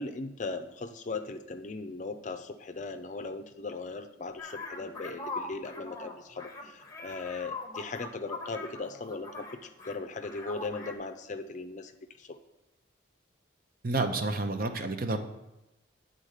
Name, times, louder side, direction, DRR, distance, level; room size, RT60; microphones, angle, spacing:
voice 1, 0.0-12.4, left 3 dB, 40° left, 9 dB, 0.5 m, -38 dB
sound 1, 4.4-10.0 10.2-10.9, left 3 dB, 20° left, 0.8 m, -42 dB
voice 2, 13.8-15.2, right 2 dB, 50° right, 6 dB, 0.7 m, -29 dB
8.7 x 4.0 x 6.5 m, 0.97 s
head